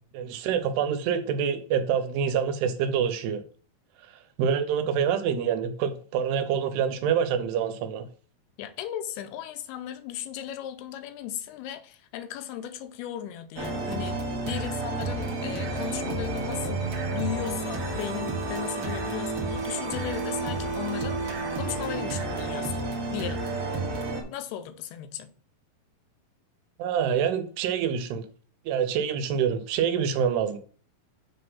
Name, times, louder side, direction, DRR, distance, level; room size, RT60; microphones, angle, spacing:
voice 1, 0.1-3.4 4.4-8.1 26.8-28.2 28.7-30.6, right 7 dB, 85° right, 2.9 m, -26 dB
voice 2, 8.6-14.2 14.4-16.8 17.1-23.6 24.3-25.3, left 10 dB, 85° left, 2.7 m, -36 dB
sound 1, 13.6-24.2, right 3 dB, 55° right, 1.7 m, -31 dB
7.5 x 3.4 x 5.5 m
omnidirectional pair, 4.6 m